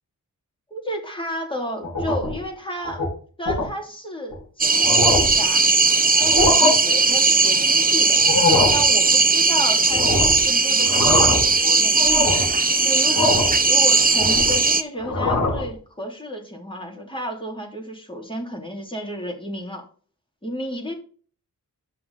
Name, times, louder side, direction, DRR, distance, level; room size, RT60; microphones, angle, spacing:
voice 1, 0.7-3.0 3.4-5.7 6.2-8.2 8.7-12.2 12.8-19.8 20.4-20.9, equal, 15° left, 1 dB, 3.0 m, -32 dB
sound 1, 1.8-2.4 2.8-3.1 3.5-3.7 4.3-4.4 4.7-5.4 6.2-6.7 8.1-8.8 9.9-10.4 10.8-11.5 11.9-12.5 13.1-13.6 13.9-14.6 15.0-15.7, left 3 dB, 75° left, 4.1 m, -22 dB
sound 2, 4.6-14.8, right 4 dB, 25° right, 0.8 m, -18 dB
10.5 x 5.7 x 4.1 m, 0.42 s
wide cardioid pair, 95°, 34 cm